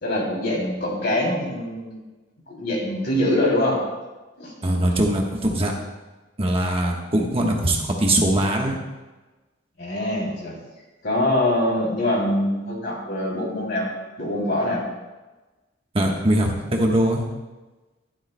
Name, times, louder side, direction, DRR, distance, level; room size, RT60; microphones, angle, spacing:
voice 1, 0.0-2.0 2.5-3.8 4.4-4.5 9.8-10.6 11.0-13.9 14.2-14.8, left 1 dB, 60° left, -2 dB, 3.0 m, -24 dB
voice 2, 4.6-5.7 6.4-8.8 15.9-17.2, right 1 dB, 30° right, 0 dB, 1.2 m, -21 dB
12.5 x 12.0 x 2.2 m, 1.2 s
head